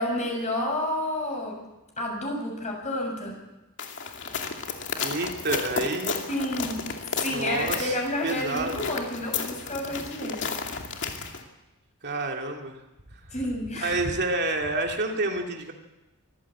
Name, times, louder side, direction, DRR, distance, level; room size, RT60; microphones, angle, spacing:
voice 1, 0.0-1.6 2.0-3.4 6.3-6.8 7.1-10.8 13.3-14.0, left 1 dB, 30° left, 1 dB, 7.2 m, -30 dB
sound 1, 3.8-11.4, left 5 dB, 55° left, 2.5 m, -33 dB
voice 2, 5.0-6.2 7.3-8.0 8.2-8.9 12.0-12.8 13.7-15.7, right 2 dB, 50° right, 2 dB, 2.4 m, -29 dB
24.5 x 15.5 x 8.5 m, 1.0 s
head